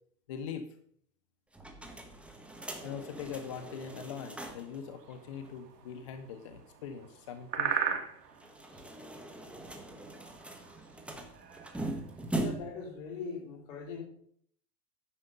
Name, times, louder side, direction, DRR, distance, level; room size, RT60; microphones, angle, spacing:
voice 1, 0.3-0.7 2.8-8.0, left 7 dB, 25° left, 9 dB, 0.3 m, -42 dB
sound 1, 1.5-4.8 5.1-5.2 5.4-5.5 8.3-12.9, right 1 dB, ahead, 1.0 m, -40 dB
sound 2, 2.5-12.5, right 7 dB, 70° right, 1.6 m, -41 dB
voice 2, 12.3-14.0, left 5 dB, 50° left, 3 dB, 3.0 m, -41 dB
9.7 x 6.3 x 5.4 m, 0.64 s
hypercardioid pair, 120°, 49 cm